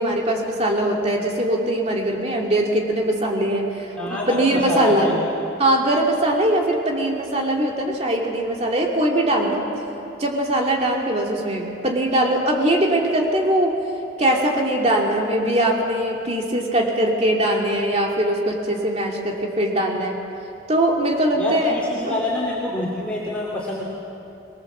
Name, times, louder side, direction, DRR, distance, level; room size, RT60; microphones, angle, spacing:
voice 1, 0.0-5.1 5.6-9.7 10.2-13.8 14.2-20.2 20.7-22.2, right 1 dB, 30° right, 0 dB, 2.6 m, -21 dB
voice 2, 4.0-5.2 21.4-23.8, left 2 dB, 5° left, -6 dB, 2.9 m, -26 dB
22.5 x 20.5 x 7.4 m, 2.8 s
head